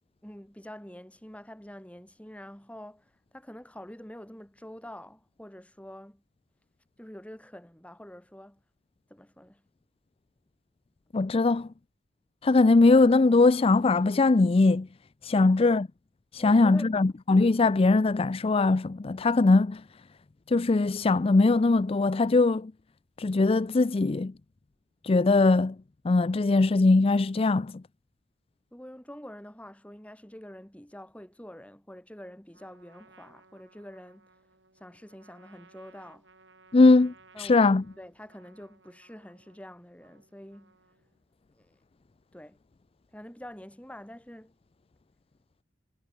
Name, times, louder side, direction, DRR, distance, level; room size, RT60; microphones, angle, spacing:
voice 1, 0.2-3.0 3.3-6.2 7.0-8.6 9.1-9.6 12.4-12.6 16.4-16.9 28.7-34.3 34.8-36.3 37.3-37.6 38.0-40.7 41.5-41.7 42.3-42.6 43.1-44.5, equal, 5° left, 2.4 m, -46 dB
voice 2, 11.1-11.7 12.4-14.9 15.2-15.9 16.3-19.8 20.5-22.7 23.2-24.3 25.0-25.7 26.0-27.7 36.7-37.8, left 3 dB, 30° left, 0.4 m, -21 dB
Trumpet, 32.5-41.2, right 3 dB, 85° right, 6.0 m, -60 dB
head